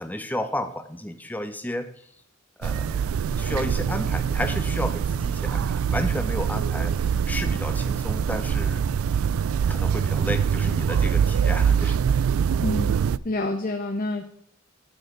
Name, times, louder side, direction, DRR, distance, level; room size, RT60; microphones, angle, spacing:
voice 1, 0.0-1.9 2.6-3.0 3.4-8.9 9.7-12.0, left 1 dB, 10° left, 9 dB, 0.8 m, -32 dB
sound 1, 2.6-13.2, right 7 dB, 90° right, 0.4 m, -24 dB
voice 2, 12.6-12.9 13.2-14.2, left 2 dB, 45° left, 4 dB, 0.9 m, -27 dB
13.0 x 6.8 x 3.8 m, 0.65 s
head